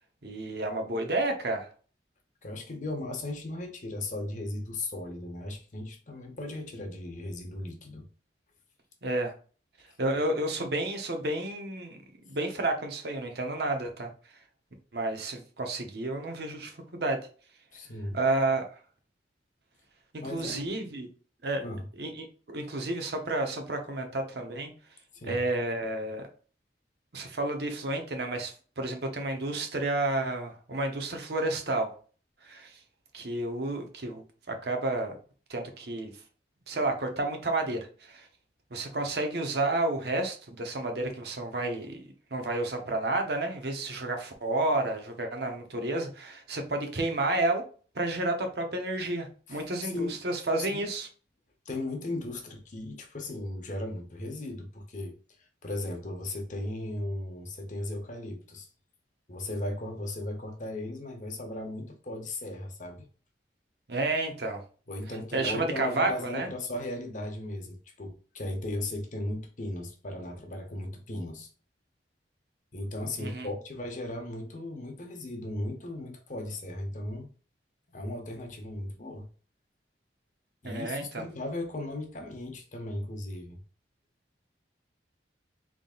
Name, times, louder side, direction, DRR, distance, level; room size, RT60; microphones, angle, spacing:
voice 1, 0.2-1.7 9.0-9.3 10.0-12.0 12.3-14.1 14.9-17.2 18.1-18.6 20.3-21.1 21.4-21.6 22.0-24.7 25.2-26.3 27.1-31.9 32.4-32.8 33.1-35.2 35.5-36.1 36.7-38.3 38.7-47.6 47.9-51.1 63.9-64.6 65.3-66.5 73.2-73.5 80.6-81.2, right 2 dB, 65° right, 0.9 m, -31 dB
voice 2, 2.4-8.1 17.7-18.2 20.2-20.7 21.6-21.9 25.1-25.5 49.5-50.2 50.7-50.9 51.7-55.2 55.6-58.7 59.3-63.1 64.9-71.5 72.7-77.3 77.9-79.3 80.6-83.6, left 1 dB, 45° left, 0.8 m, -36 dB
3.9 x 3.6 x 2.4 m
head